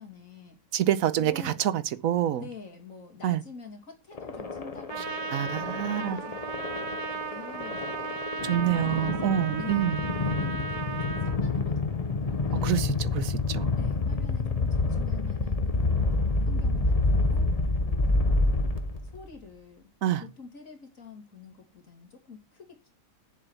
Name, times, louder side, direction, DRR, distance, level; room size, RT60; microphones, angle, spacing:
voice 1, 0.0-0.6 1.2-1.6 2.4-6.4 6.7-8.2 8.7-12.7 13.8-16.0 16.4-18.0 19.0-19.9 20.2-22.9, left 5 dB, 65° left, 2.6 m, -47 dB
voice 2, 0.7-2.4 3.2-3.4 5.3-6.2 8.4-10.0 12.6-13.7 20.0-20.2, right 11 dB, 75° right, 1.2 m, -27 dB
sound 1, 4.2-19.3, left 3 dB, 30° left, 0.9 m, -28 dB
Trumpet, 4.9-11.4, right 4 dB, 40° right, 1.0 m, -36 dB
7.2 x 6.9 x 6.9 m
omnidirectional pair, 1.5 m